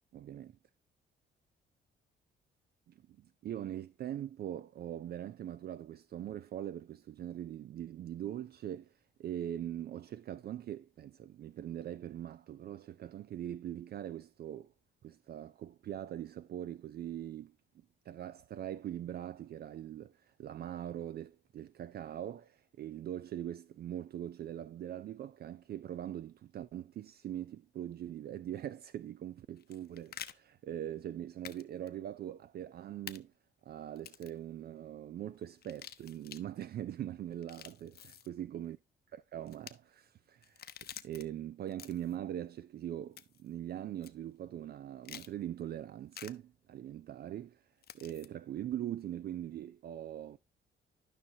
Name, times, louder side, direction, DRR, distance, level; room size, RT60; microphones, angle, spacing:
voice 1, 0.1-0.5 2.9-8.9 9.2-14.7 15.0-17.5 18.1-33.3 33.6-38.8 39.1-40.7 41.0-47.6 47.9-50.4, right 11 dB, 55° right, 0.4 m, -42 dB
sound 1, 29.6-30.3 31.4-31.6 31.9-32.0 33.1-33.2 34.0-34.4 35.6-36.4 37.3-38.3 39.5-39.7 40.4-41.2 41.7-42.2 43.2-43.5 44.0-44.1 45.0-45.3 46.1-46.3 47.8-48.3, left 9 dB, 55° left, 0.8 m, -48 dB
12.5 x 5.7 x 2.8 m
cardioid pair, 90°, 20 cm